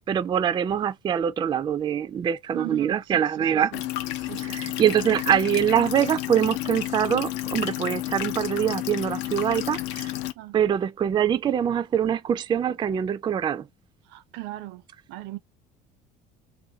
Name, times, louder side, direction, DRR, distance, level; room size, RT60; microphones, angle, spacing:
voice 1, 0.0-3.7 4.4-10.1 10.5-13.7, right 9 dB, 25° right, 0.3 m, -24 dB
voice 2, 2.5-3.8 4.2-4.8 10.4-10.6 14.1-14.8 15.1-15.4, right 18 dB, 70° right, 0.6 m, -38 dB
sound 1, 3.7-10.3, left 15 dB, 75° left, 0.5 m, -31 dB
2.6 x 2.2 x 3.8 m
supercardioid pair, 105°, 19 cm